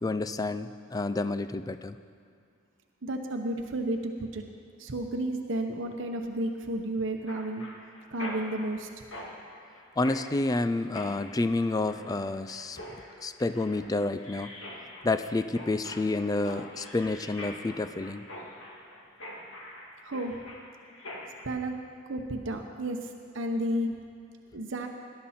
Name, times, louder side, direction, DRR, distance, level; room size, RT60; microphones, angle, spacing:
voice 1, 0.0-2.0 10.0-14.5 15.0-18.2, left 2 dB, 20° left, 11 dB, 0.3 m, -29 dB
voice 2, 3.0-4.4 4.8-7.7 8.1-8.9 20.0-20.4 21.4-21.7 22.1-23.9 24.5-24.9, right 1 dB, 70° right, 4 dB, 0.9 m, -32 dB
Mechanisms, 7.3-21.5, left 1 dB, 90° left, 2.2 m, -44 dB
18.5 x 11.5 x 4.3 m, 2.2 s
head